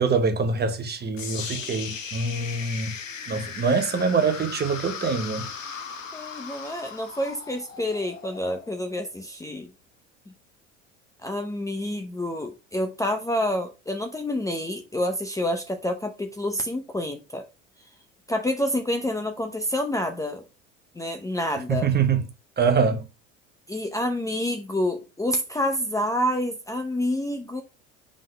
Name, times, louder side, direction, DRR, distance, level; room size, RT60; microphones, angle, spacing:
voice 1, 0.0-2.9 3.3-5.5 21.7-22.2 22.6-23.0, right 5 dB, 25° right, 1.1 m, -24 dB
sound 1, 1.2-9.2, left 6 dB, 90° left, 0.8 m, -37 dB
voice 2, 6.1-9.7 11.2-17.4 18.3-20.4 21.0-21.9 23.7-27.6, left 1 dB, 10° left, 0.8 m, -28 dB
5.0 x 3.8 x 5.2 m
hypercardioid pair, 70°, 38 cm